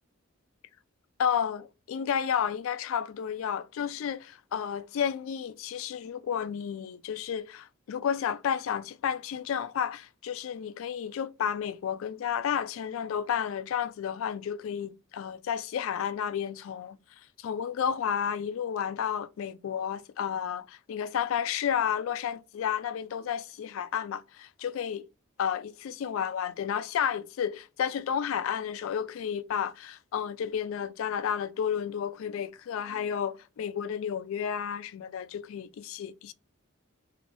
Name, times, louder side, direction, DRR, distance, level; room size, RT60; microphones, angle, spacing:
voice 1, 1.2-17.0 17.4-25.0 25.4-36.3, left 8 dB, 75° left, 0.3 m, -31 dB
3.2 x 2.6 x 2.5 m
head